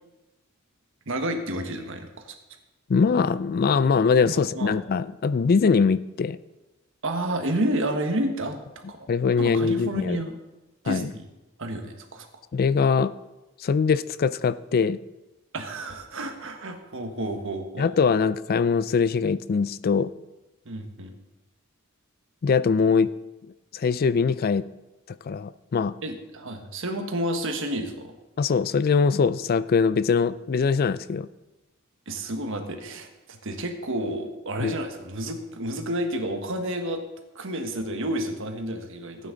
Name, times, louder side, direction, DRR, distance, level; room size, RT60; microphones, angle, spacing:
voice 1, 1.1-2.1 4.2-4.8 7.0-9.1 9.4-10.4 10.8-11.3 11.6-12.3 15.5-17.9 20.6-21.1 26.0-28.1 32.1-37.0 37.3-39.3, right 1 dB, 65° right, 5 dB, 1.4 m, -30 dB
voice 2, 2.9-6.4 9.1-10.2 10.9-11.1 12.5-13.1 13.6-15.0 17.8-20.1 22.4-23.1 23.7-24.7 25.3-25.9 28.4-31.3 34.6-34.7, left 5 dB, 45° left, 16 dB, 0.4 m, -22 dB
15.5 x 9.1 x 3.9 m, 1.1 s
head